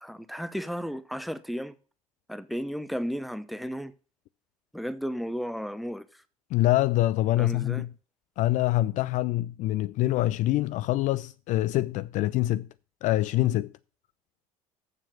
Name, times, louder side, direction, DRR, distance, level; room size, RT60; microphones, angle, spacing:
voice 1, 0.0-1.7 2.3-3.9 4.7-6.0 7.4-7.9, equal, ahead, 0.8 m, -34 dB
voice 2, 6.5-7.9 8.4-12.7 13.0-13.7, left 15 dB, 45° left, 0.4 m, -25 dB
7.4 x 6.8 x 7.3 m
figure-of-eight pair, 65°, 18 cm